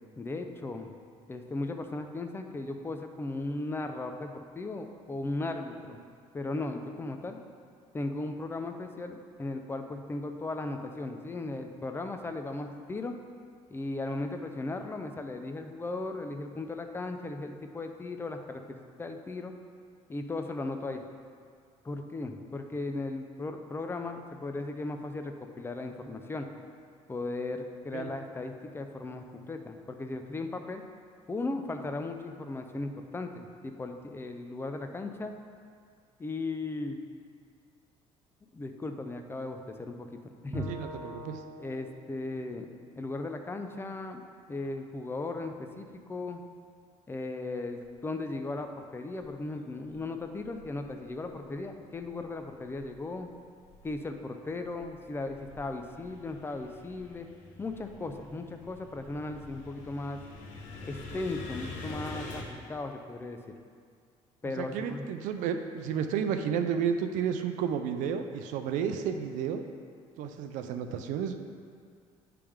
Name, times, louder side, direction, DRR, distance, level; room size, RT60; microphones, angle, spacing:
voice 1, 0.2-0.9 1.3-6.0 6.3-7.4 7.9-13.1 13.7-19.5 20.1-21.0 21.8-26.5 27.1-30.8 31.3-35.3 36.2-37.0 38.5-40.7 41.6-42.7 43.0-44.2 44.5-46.4 47.1-53.3 53.8-57.3 57.6-60.2 60.8-63.6 64.4-65.1, left 2 dB, 15° left, 5 dB, 0.5 m, -37 dB
Bowed string instrument, 40.5-43.8, right 1 dB, 25° right, 1.2 m, -43 dB
voice 2, 40.7-41.4 64.6-69.6 70.2-71.3, right 7 dB, 75° right, 7 dB, 0.5 m, -32 dB
sound 1, 49.2-49.3 49.9-51.5 51.9-53.2 53.6-62.4, left 2 dB, 70° left, 1.0 m, -46 dB
9.9 x 3.4 x 3.6 m, 2.2 s
supercardioid pair, 90°, 13 cm